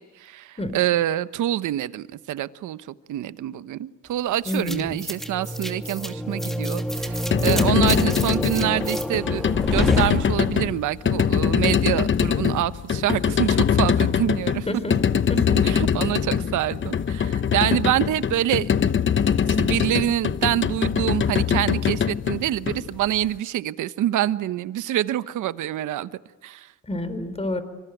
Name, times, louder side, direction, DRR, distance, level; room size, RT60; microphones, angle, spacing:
voice 1, 0.0-2.8 3.1-14.7 15.6-18.7 19.6-26.1 26.4-26.7, right 12 dB, 80° right, 13 dB, 1.1 m, -26 dB
voice 2, 4.5-5.0 7.4-7.9 14.8-14.9 15.3-15.6 26.9-27.6, left 1 dB, 20° left, 12 dB, 4.3 m, -28 dB
sound 1, 4.5-10.8, equal, ahead, 2.7 m, -29 dB
sound 2, 7.1-23.3, left 7 dB, 40° left, 1.0 m, -23 dB
25.5 x 25.0 x 9.3 m, 1.0 s
cardioid pair, 90°, 30 cm